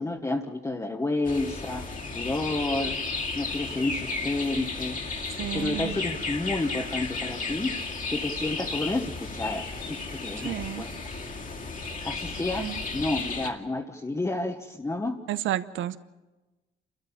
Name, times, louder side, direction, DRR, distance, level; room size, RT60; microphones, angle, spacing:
voice 1, 0.0-1.9 2.1-3.0 3.3-5.0 5.5-7.7 8.1-10.9 12.0-15.2, left 2 dB, 15° left, 1 dB, 1.3 m, -30 dB
sound 1, 1.2-13.5, left 3 dB, 45° left, 2.3 m, -34 dB
voice 2, 5.3-6.0 10.4-10.8 12.6-12.8 15.3-16.0, right 13 dB, 80° right, 14 dB, 0.9 m, -31 dB
29.0 x 13.5 x 7.1 m, 1.1 s
cardioid pair, 90°, 20 cm